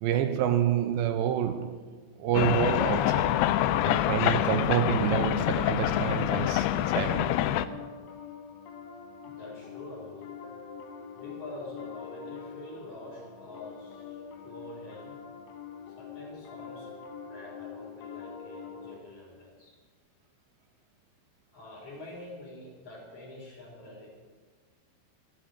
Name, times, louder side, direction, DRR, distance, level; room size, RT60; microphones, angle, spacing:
voice 1, 0.0-1.8 2.2-3.3 3.8-7.4, right 10 dB, 80° right, 2.3 m, -28 dB
sound 1, 2.3-7.7, left 12 dB, 85° left, 2.5 m, -26 dB
Piano, 6.5-19.0, left 6 dB, 70° left, 1.6 m, -45 dB
voice 2, 9.2-10.4 11.1-15.2 15.9-19.7 21.5-24.3, left 1 dB, 50° left, 5.2 m, -46 dB
12.5 x 12.5 x 6.5 m
omnidirectional pair, 4.5 m